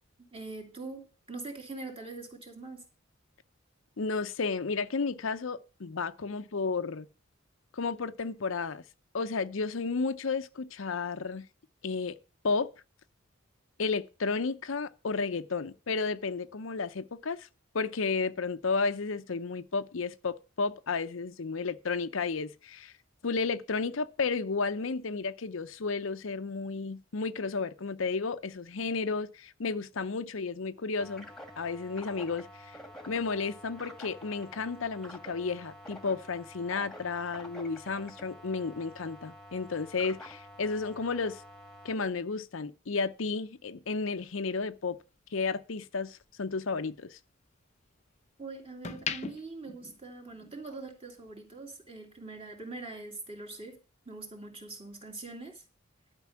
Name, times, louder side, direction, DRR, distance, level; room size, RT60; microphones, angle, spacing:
voice 1, 0.3-2.8 48.4-53.8 54.1-55.6, right 3 dB, 25° right, 2.9 m, -43 dB
voice 2, 4.0-7.1 7.7-8.8 9.1-11.4 11.8-12.2 12.4-12.7 13.8-17.5 17.7-22.9 23.2-31.3 31.6-32.8 33.1-41.4 41.8-45.0 45.3-47.2, left 4 dB, 75° left, 0.7 m, -32 dB
sound 1, 31.0-41.9, left 1 dB, ahead, 1.7 m, -49 dB
sound 2, 44.0-46.3 46.7-48.2 48.6-50.7 51.0-51.3, left 6 dB, 35° left, 0.6 m, -41 dB
12.0 x 5.4 x 7.1 m
head